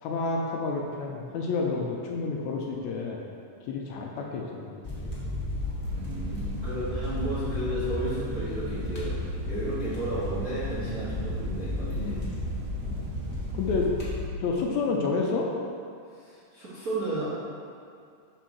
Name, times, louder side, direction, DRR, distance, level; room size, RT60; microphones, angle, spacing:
voice 1, 0.0-3.2 3.7-4.7 5.0-5.1 9.8-10.0 12.0-12.3 12.8-13.1 13.5-13.9 14.4-15.5, left 4 dB, 80° left, -1 dB, 1.8 m, -30 dB
sound 1, 4.8-14.2, left 1 dB, 30° left, 0.9 m, -33 dB
sound 2, 5.8-13.9, right 4 dB, 85° right, 2.1 m, -45 dB
voice 2, 5.9-12.2 16.1-17.3, right 1 dB, 60° right, -11 dB, 0.9 m, -33 dB
5.1 x 4.6 x 6.1 m, 2.4 s
omnidirectional pair, 3.6 m